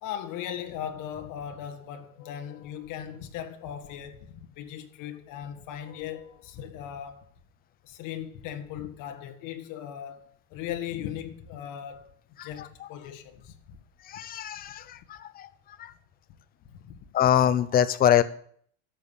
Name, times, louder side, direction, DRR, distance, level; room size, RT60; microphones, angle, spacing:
voice 1, 0.0-7.3 7.8-10.2 10.5-12.1 12.4-13.8 16.7-17.0, left 10 dB, 50° left, 1.6 m, -38 dB
voice 2, 14.1-15.5 15.8-15.9 17.1-18.2, left 10 dB, 20° left, 0.5 m, -24 dB
11.5 x 7.3 x 8.2 m
supercardioid pair, 145°, 42 cm